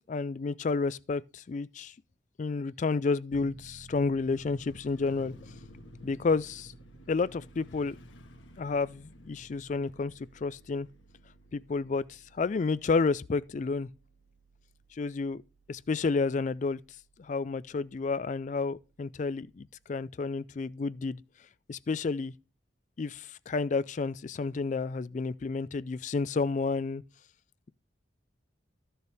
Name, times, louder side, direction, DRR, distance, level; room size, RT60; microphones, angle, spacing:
voice 1, 0.1-1.9 2.4-5.3 6.0-6.7 7.1-8.0 8.6-10.9 11.5-13.9 14.9-15.4 15.7-16.8 17.2-21.2 21.7-22.3 23.0-27.0, left 4 dB, 40° left, 0.3 m, -30 dB
Piano, 3.3-20.0, right 3 dB, 40° right, 0.6 m, -57 dB
Motorcycle, 4.1-14.2 14.6-14.7, left 2 dB, 80° left, 1.6 m, -55 dB
13.0 x 6.7 x 3.4 m
head